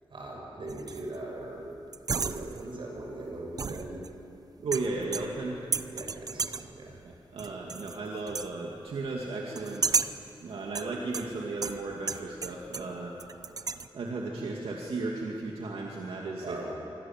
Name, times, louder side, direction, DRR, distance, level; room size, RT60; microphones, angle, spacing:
voice 1, 0.1-1.7 2.2-4.1 5.8-7.0 16.4-16.7, right 2 dB, 60° right, -1 dB, 6.8 m, -40 dB
sound 1, 0.7-1.2 1.9-2.8 3.6-4.3 4.7-5.5 5.7-6.8 7.4-8.0 8.3-8.5 9.6-10.3 10.8-12.9 13.2-13.9, right 5 dB, 45° right, 0.7 m, -33 dB
voice 2, 4.6-5.6 7.0-9.9 10.4-13.2 13.9-16.6, right 3 dB, 90° right, -1 dB, 2.4 m, -35 dB
26.5 x 24.0 x 7.5 m, 2.8 s
wide cardioid pair, 140°, 9 cm